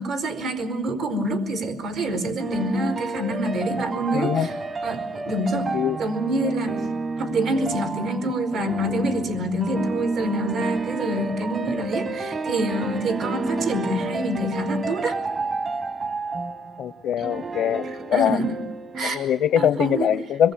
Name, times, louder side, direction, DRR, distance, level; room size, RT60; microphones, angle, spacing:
voice 1, 0.0-4.5 4.8-5.7 6.0-6.8 7.2-15.2 17.2-17.3 17.8-18.5 18.9-19.2 19.6-20.1, right 1 dB, 80° right, 7 dB, 4.5 m, -26 dB
sound 1, 2.4-19.3, right 3 dB, 40° right, 1.4 m, -31 dB
voice 2, 4.1-4.5 5.7-6.0 16.8-17.8 18.1-18.4 19.0-20.5, left 9 dB, 80° left, 16 dB, 0.8 m, -22 dB
26.0 x 22.0 x 8.8 m, 0.94 s
cardioid pair, 90°, 0 cm